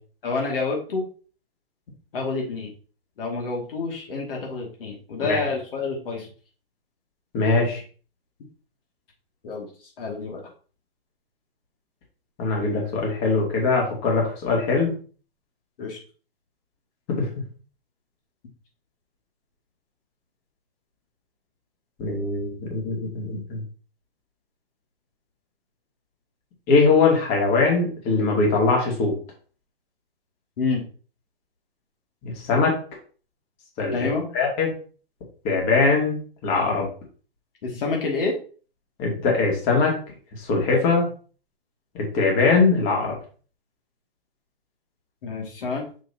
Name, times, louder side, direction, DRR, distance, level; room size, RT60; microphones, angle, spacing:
voice 1, 0.2-1.1 2.1-2.7 3.2-6.3 9.4-9.7 10.0-10.4 15.8-16.0 30.6-30.8 33.9-34.3 37.6-38.3 45.2-45.8, left 4 dB, 65° left, -1 dB, 2.3 m, -28 dB
voice 2, 7.3-7.8 12.4-14.9 17.2-17.3 22.0-23.6 26.7-29.1 32.2-32.8 33.8-34.1 34.3-34.7 35.4-36.9 39.0-39.9 40.5-41.1 41.9-43.1, left 3 dB, 35° left, -1 dB, 2.5 m, -21 dB
6.3 x 6.3 x 2.8 m, 0.39 s
hypercardioid pair, 145°, 30 cm